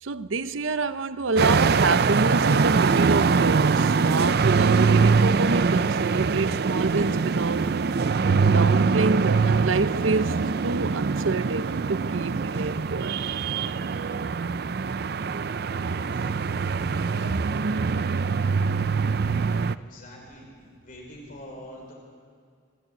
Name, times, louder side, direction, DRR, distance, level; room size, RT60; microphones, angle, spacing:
voice 1, 0.0-7.8 8.5-13.2, right 3 dB, 85° right, 0.8 m, -27 dB
sound 1, 1.4-19.7, right 5 dB, 55° right, 0.4 m, -23 dB
voice 2, 19.8-20.5 20.8-21.9, equal, 45° left, 5.5 m, -44 dB
25.0 x 13.5 x 9.1 m
head